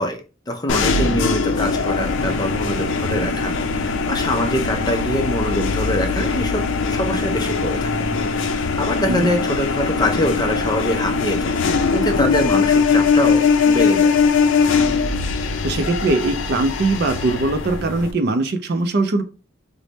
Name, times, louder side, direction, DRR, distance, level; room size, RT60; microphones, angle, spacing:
voice 1, 0.0-11.6 11.9-14.2, equal, 20° left, 0.5 m, -24 dB
sound 1, 0.7-18.1, left 5 dB, 70° left, 0.5 m, -21 dB
voice 2, 15.6-19.2, right 2 dB, 50° right, 0.4 m, -21 dB
3.2 x 2.1 x 4.0 m
head